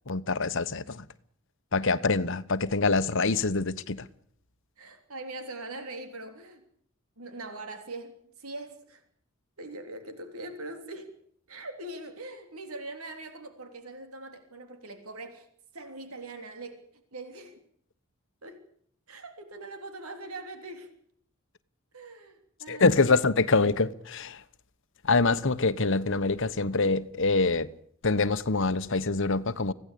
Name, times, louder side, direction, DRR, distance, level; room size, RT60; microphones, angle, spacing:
voice 1, 0.1-1.0 1.7-4.1 22.7-24.4 25.0-27.7 28.0-29.7, left 3 dB, 60° left, 1.2 m, -25 dB
voice 2, 4.8-6.6 7.2-9.0 9.6-11.1 11.5-15.5 15.7-16.8 17.1-17.5 18.4-18.6 19.1-20.9 21.9-23.2, right 2 dB, 85° right, 3.4 m, -42 dB
25.5 x 16.5 x 8.5 m
head